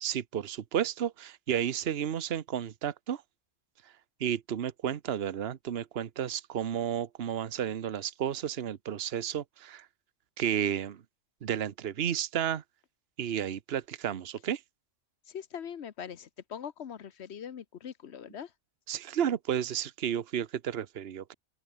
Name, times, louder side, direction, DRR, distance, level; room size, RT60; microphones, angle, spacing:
voice 1, 0.0-3.2 4.2-9.9 10.4-11.0 11.4-12.6 13.2-14.6 18.9-21.3, right 9 dB, 55° right, 1.1 m, -32 dB
voice 2, 15.3-18.5, left 8 dB, 65° left, 1.3 m, -42 dB
open air
omnidirectional pair, 1.2 m